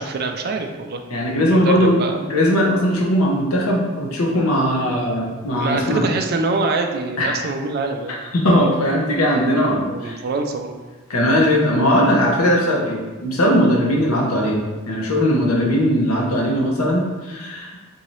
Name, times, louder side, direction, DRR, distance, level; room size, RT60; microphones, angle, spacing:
voice 1, 0.0-1.0 1.4-1.7 2.0-2.2 5.5-8.1 9.8-10.7, right 3 dB, 45° right, 5 dB, 0.3 m, -24 dB
voice 2, 1.1-6.0 7.2-7.3 8.1-10.2 11.1-17.7, equal, 85° left, -2 dB, 0.9 m, -19 dB
3.8 x 2.7 x 3.1 m, 1.3 s
head